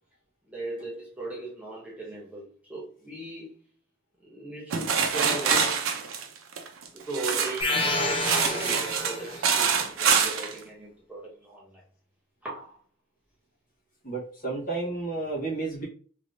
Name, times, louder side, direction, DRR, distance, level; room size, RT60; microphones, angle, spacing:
voice 1, 0.5-3.5 4.2-5.9 6.9-11.8 12.4-12.8, right 2 dB, 5° right, 0.9 m, -38 dB
sound 1, 4.7-7.7 8.1-10.5, right 6 dB, 75° right, 0.6 m, -25 dB
sound 2, 7.6-9.5, left 1 dB, 25° left, 0.6 m, -28 dB
voice 2, 14.0-15.8, right 3 dB, 40° left, 1.2 m, -31 dB
3.2 x 3.0 x 2.6 m
head